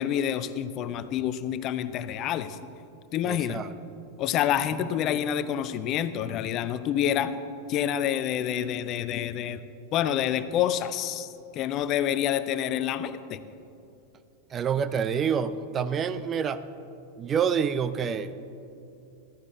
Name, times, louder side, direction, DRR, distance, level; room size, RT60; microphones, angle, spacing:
voice 1, 0.0-2.6 3.1-3.6 4.2-7.4 7.7-9.6 9.9-13.4, left 10 dB, 35° left, 13 dB, 0.5 m, -28 dB
voice 2, 3.2-3.7 14.5-16.6 17.2-18.3, right 7 dB, 25° right, 13 dB, 0.5 m, -27 dB
14.5 x 13.5 x 3.6 m, 2.7 s
figure-of-eight pair, 90°, 0 cm